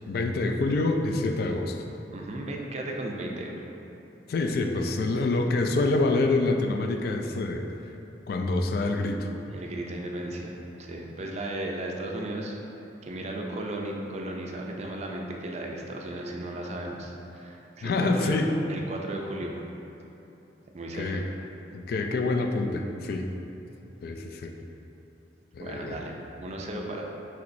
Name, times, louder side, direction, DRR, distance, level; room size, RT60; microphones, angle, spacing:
voice 1, 0.1-1.8 4.3-7.7 8.3-9.3 17.8-18.5 20.9-21.2 21.7-23.2 24.0-24.5 25.5-26.0, left 2 dB, 60° left, 4 dB, 0.3 m, -26 dB
voice 2, 2.1-3.7 9.5-12.6 13.0-18.4 18.7-19.6 20.7-21.2 25.6-27.0, right 1 dB, 40° right, 0 dB, 0.4 m, -35 dB
5.8 x 3.1 x 2.6 m, 2.9 s
head